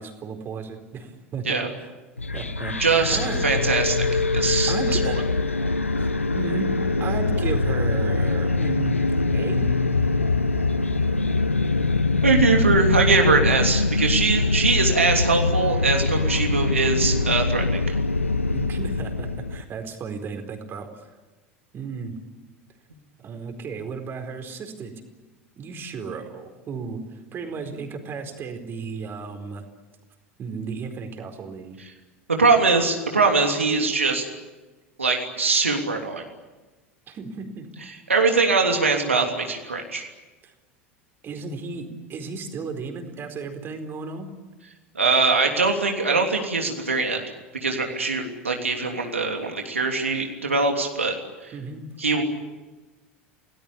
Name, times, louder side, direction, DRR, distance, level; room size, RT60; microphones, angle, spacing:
voice 1, 0.0-1.9 2.3-3.5 4.7-5.2 6.0-6.7 7.0-9.0 9.3-9.7 18.5-21.1 21.7-22.2 23.2-25.0 25.6-29.6 30.4-31.8 37.1-37.7 40.4-40.5 41.2-44.3 51.5-51.8, right 5 dB, 35° right, 5 dB, 4.4 m, -34 dB
sound 1, 2.2-19.6, left 3 dB, 85° left, 0.9 m, -23 dB
voice 2, 2.8-3.2 3.4-5.1 12.2-17.8 32.3-34.2 35.0-36.2 38.1-40.1 44.9-47.2 47.6-51.1 51.4-51.5 52.0-52.2, right 4 dB, 80° right, 2 dB, 3.1 m, -22 dB
29.0 x 19.0 x 8.6 m, 1.2 s
figure-of-eight pair, 80°, 7 cm